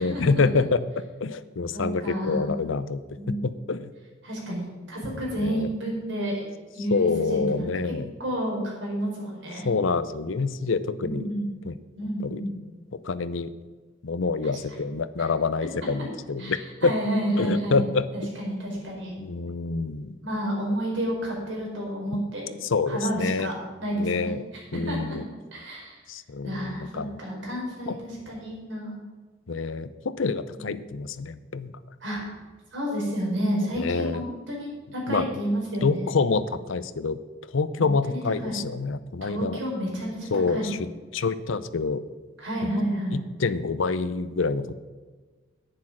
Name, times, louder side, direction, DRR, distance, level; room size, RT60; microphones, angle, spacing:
voice 1, 0.0-3.0 3.3-3.9 5.4-5.7 6.9-8.1 9.6-11.3 11.7-11.8 12.2-12.4 13.0-13.5 14.0-16.9 17.4-18.1 19.2-20.1 22.6-23.5 24.0-24.4 24.7-25.2 26.1-27.1 27.9-28.0 29.5-31.7 33.7-34.2 35.1-35.3 35.8-37.2 37.5-39.6 40.3-40.8 41.1-42.0 43.1-44.7, left 4 dB, 75° left, 15 dB, 0.6 m, -27 dB
voice 2, 1.7-2.5 3.1-3.4 4.2-6.4 6.7-7.7 8.2-9.7 11.0-11.5 11.9-12.6 16.4-17.8 18.1-19.2 20.2-22.4 22.9-24.3 24.8-25.2 25.5-26.0 26.4-29.0 30.5-30.7 32.0-32.2 32.7-36.1 37.8-38.6 39.2-40.7 42.4-43.2, equal, 65° right, -2 dB, 4.6 m, -30 dB
10.5 x 9.8 x 6.1 m, 1.4 s
head